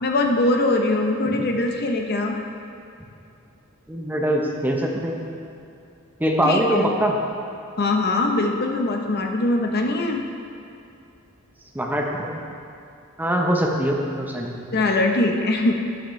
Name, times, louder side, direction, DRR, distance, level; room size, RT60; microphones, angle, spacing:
voice 1, 0.0-2.3 6.4-6.9 7.8-10.2 14.7-15.7, left 2 dB, 50° left, 2 dB, 0.8 m, -22 dB
voice 2, 3.9-5.2 6.2-7.2 11.7-12.4 13.2-14.6, equal, 10° right, 0 dB, 0.7 m, -22 dB
11.5 x 8.7 x 3.2 m, 2.6 s
head